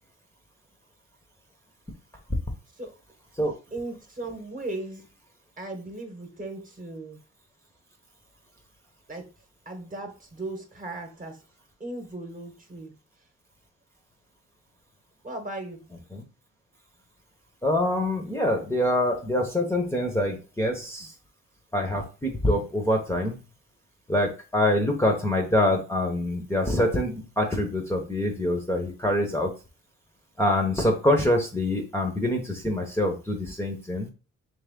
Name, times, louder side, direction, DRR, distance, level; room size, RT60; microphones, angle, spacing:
voice 1, 3.7-5.0 5.6-7.2 9.1-9.3 9.7-11.4 11.8-12.9 15.2-15.9, right 2 dB, 25° right, 4 dB, 1.1 m, -37 dB
voice 2, 17.6-21.1 21.7-23.4 24.1-29.5 30.4-34.1, left 1 dB, 10° left, 2 dB, 0.8 m, -25 dB
3.4 x 3.1 x 3.6 m, 0.33 s
cardioid pair, 90°, 30 cm